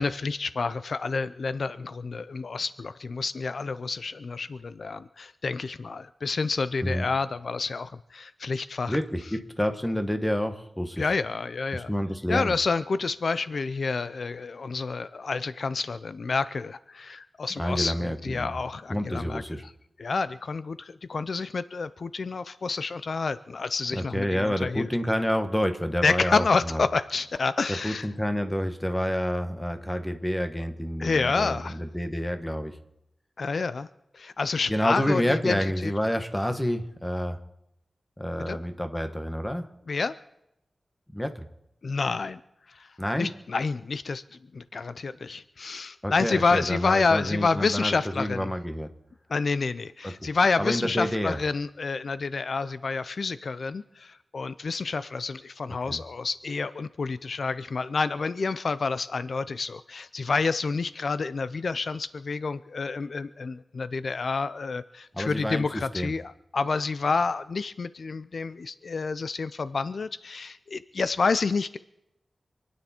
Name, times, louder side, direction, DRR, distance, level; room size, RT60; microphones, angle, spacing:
voice 1, 0.0-9.0 11.0-11.9 12.3-19.4 20.0-24.9 26.0-28.1 31.0-31.8 33.4-33.9 34.1-35.9 38.4-38.6 39.9-40.1 41.8-42.4 42.7-42.9 43.2-44.2 44.5-48.5 49.3-71.8, left 4 dB, 70° left, 14 dB, 0.5 m, -29 dB
voice 2, 8.9-11.1 11.7-12.5 17.6-18.5 18.9-19.6 23.9-26.8 27.7-32.8 34.7-37.4 38.2-39.7 41.1-41.5 43.0-43.3 46.0-48.9 50.0-50.3 50.6-51.4 55.9-56.0 65.1-66.1, equal, 10° left, 7 dB, 1.4 m, -28 dB
27.5 x 9.7 x 4.4 m, 0.84 s
wide cardioid pair, 85°, 0 cm